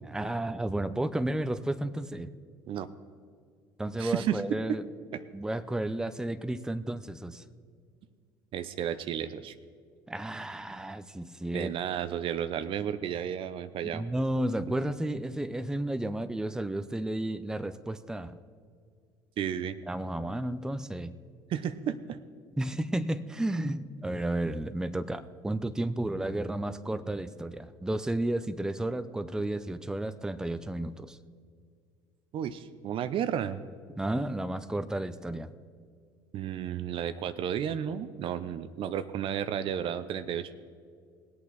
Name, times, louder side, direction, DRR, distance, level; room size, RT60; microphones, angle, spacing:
voice 1, 0.0-2.3 3.8-4.8 5.3-7.4 10.1-11.7 13.9-18.4 19.9-21.1 22.6-31.2 34.0-35.5, right 1 dB, 5° right, 12 dB, 0.6 m, -32 dB
voice 2, 4.0-4.8 5.1-5.2 8.5-9.5 11.5-14.1 19.4-19.8 21.5-22.2 32.3-33.6 36.3-40.5, right 9 dB, 50° right, 13 dB, 0.6 m, -32 dB
18.5 x 8.5 x 4.0 m, 2.1 s
hypercardioid pair, 65°, 11 cm